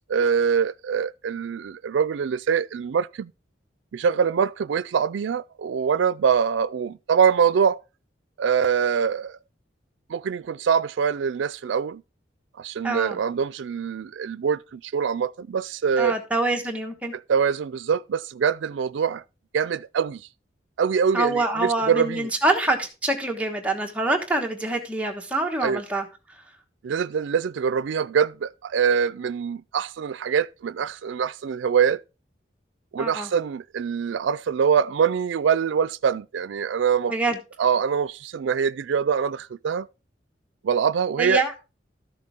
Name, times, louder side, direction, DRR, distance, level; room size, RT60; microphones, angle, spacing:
voice 1, 0.1-3.3 3.9-7.8 8.4-9.4 10.1-12.0 12.6-16.1 17.1-19.2 19.5-20.2 20.8-22.3 25.6-25.8 26.8-32.0 32.9-37.1 37.6-39.9 40.6-41.4, right 7 dB, 85° right, 0.4 m, -24 dB
voice 2, 12.8-13.2 16.0-17.1 21.1-26.1 33.0-33.3 37.1-37.4 41.2-41.5, right 2 dB, 5° right, 1.2 m, -25 dB
13.0 x 6.7 x 3.5 m
head